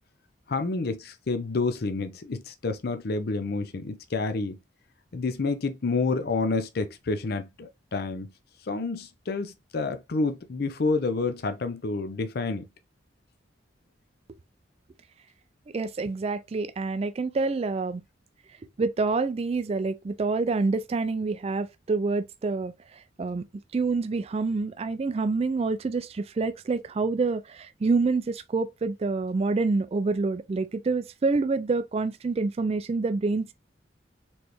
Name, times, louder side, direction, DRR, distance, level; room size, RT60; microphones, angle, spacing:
voice 1, 0.5-4.6 5.1-8.3 8.6-12.7, left 3 dB, 55° left, 0.5 m, -29 dB
voice 2, 15.7-18.0 18.8-22.7 23.2-23.4 23.7-33.5, right 3 dB, 30° right, 0.3 m, -27 dB
4.3 x 3.3 x 2.9 m
head